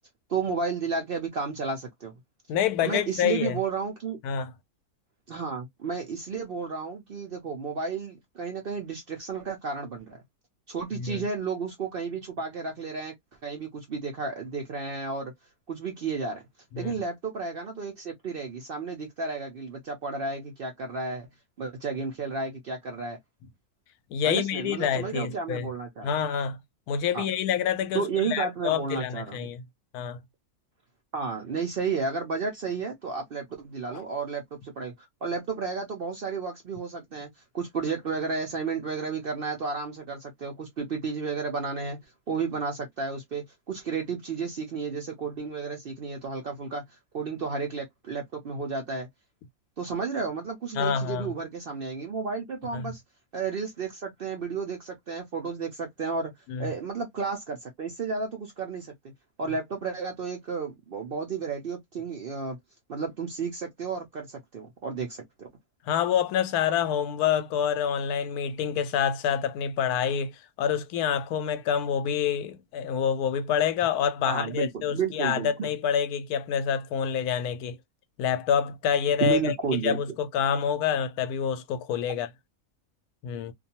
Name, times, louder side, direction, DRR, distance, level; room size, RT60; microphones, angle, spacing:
voice 1, 0.3-2.1 2.8-4.2 5.3-10.2 10.7-13.1 13.4-15.3 15.7-16.4 16.8-21.3 21.6-23.2 24.2-26.1 27.1-27.3 27.9-29.5 31.1-37.3 37.5-42.0 42.3-49.1 49.8-53.0 53.3-56.3 56.6-58.9 59.4-62.6 62.9-65.5 74.2-75.7 79.2-80.0, right 4 dB, 60° right, 0.6 m, -32 dB
voice 2, 2.5-3.6 4.2-4.5 11.0-11.2 16.7-17.0 24.1-25.7 26.0-26.6 26.9-29.6 29.9-30.2 33.9-34.0 50.7-51.3 52.7-52.9 56.5-56.7 65.9-77.8 78.2-79.5 79.8-82.3 83.2-83.5, left 8 dB, 90° left, 1.1 m, -27 dB
2.5 x 2.3 x 2.7 m
omnidirectional pair, 1.5 m